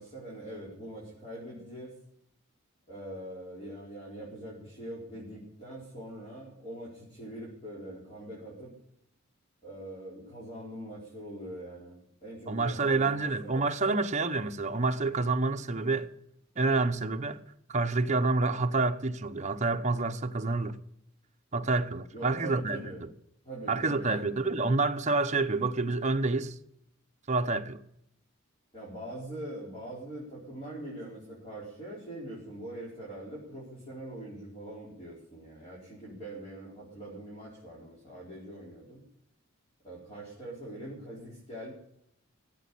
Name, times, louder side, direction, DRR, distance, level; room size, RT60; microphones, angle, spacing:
voice 1, 0.0-2.0 2.9-8.7 9.6-13.7 22.1-23.0 23.4-24.2 28.7-39.0 39.8-41.7, right 1 dB, 30° left, 4.6 m, -43 dB
voice 2, 12.5-16.1 16.6-17.4 17.7-20.8 21.5-23.1 23.7-26.5 27.3-27.8, right 3 dB, 35° right, 0.9 m, -28 dB
16.0 x 8.3 x 8.4 m
head